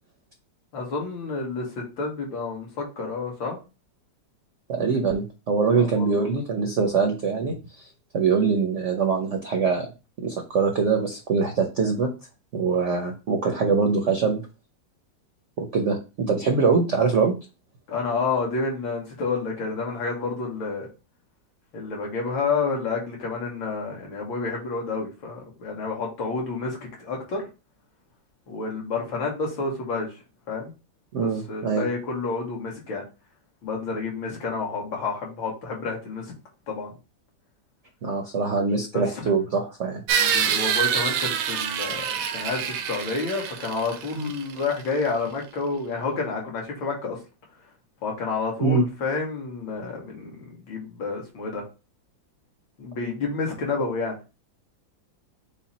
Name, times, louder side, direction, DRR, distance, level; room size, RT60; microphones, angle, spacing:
voice 1, 0.7-3.6 5.7-6.3 17.9-20.9 21.7-27.4 28.5-30.1 30.5-30.7 31.2-33.0 33.6-36.3 36.7-36.9 38.9-39.0 40.2-47.2 48.0-51.6 52.8-54.2, left 4 dB, 75° left, -1 dB, 2.1 m, -29 dB
voice 2, 4.7-7.9 8.1-9.9 10.2-12.1 12.5-14.4 15.6-17.3 31.1-31.8 38.0-40.0 44.2-44.3 48.6-48.8, right 5 dB, 70° right, 4 dB, 0.7 m, -23 dB
sound 1, 40.1-44.8, right 8 dB, 90° right, 1.4 m, -26 dB
5.6 x 2.1 x 4.1 m, 0.30 s
omnidirectional pair, 2.1 m